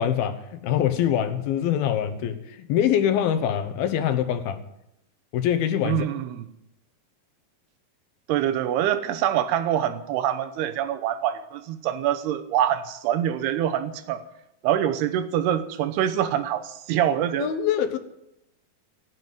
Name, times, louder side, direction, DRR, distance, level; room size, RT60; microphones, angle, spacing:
voice 1, 0.0-4.6 5.3-6.1 17.4-18.0, left 9 dB, 75° left, 2.7 m, -24 dB
voice 2, 5.8-6.5 8.3-14.3 14.6-17.5, right 11 dB, 85° right, 3.0 m, -25 dB
16.5 x 8.2 x 9.3 m
omnidirectional pair, 4.6 m